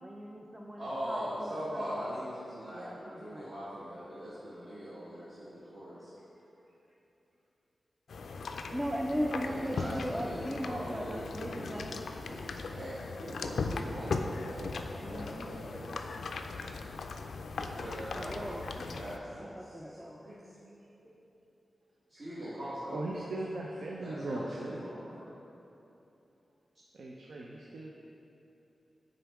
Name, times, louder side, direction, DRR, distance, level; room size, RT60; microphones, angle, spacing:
voice 1, 0.0-1.9 2.7-3.5 8.7-12.0 15.0-15.5 18.1-18.6 19.4-20.2, equal, 10° right, -1 dB, 0.3 m, -38 dB
voice 2, 0.7-6.1 9.3-11.8 12.2-16.1 17.5-20.5 22.1-23.0 24.0-25.2, equal, 50° right, -12 dB, 1.3 m, -41 dB
sound 1, 8.1-19.2, left 4 dB, 85° left, 0.3 m, -39 dB
voice 3, 22.9-24.9 26.9-27.9, right 2 dB, 80° right, -2 dB, 0.5 m, -39 dB
9.4 x 3.9 x 3.5 m, 3.0 s
wide cardioid pair, 165°, 0 cm